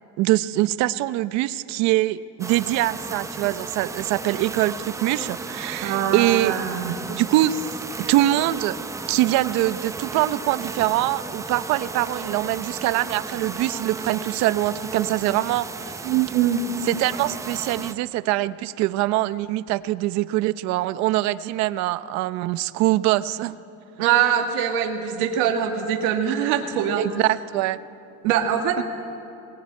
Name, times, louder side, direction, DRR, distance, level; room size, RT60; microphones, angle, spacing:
voice 1, 0.2-6.5 7.1-7.6 8.1-8.8 9.1-15.9 16.9-23.6 27.0-27.8 28.8-28.9, right 16 dB, 65° right, 14 dB, 0.8 m, -23 dB
sound 1, 2.4-17.9, right 3 dB, 10° right, 0.7 m, -34 dB
voice 2, 5.8-7.0 16.0-16.6 24.0-27.0 28.2-28.8, right 9 dB, 85° right, 3 dB, 2.1 m, -23 dB
20.5 x 20.5 x 9.7 m, 2.7 s
cardioid pair, 155°, 30 cm